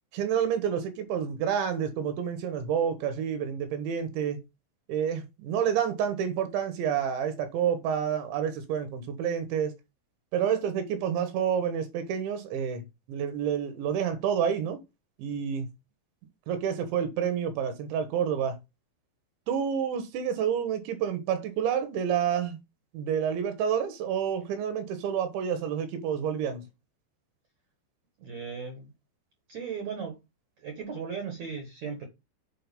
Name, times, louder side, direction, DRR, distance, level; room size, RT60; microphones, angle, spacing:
voice 1, 0.1-4.4 4.9-9.7 10.3-12.8 13.1-14.8 15.2-15.7 16.5-18.6 19.5-22.6 22.9-26.6, right 8 dB, 75° right, 3.4 m, -29 dB
voice 2, 28.2-28.9 29.5-30.2 30.6-32.1, right 6 dB, 60° right, 2.0 m, -36 dB
8.3 x 4.9 x 5.3 m
omnidirectional pair, 5.5 m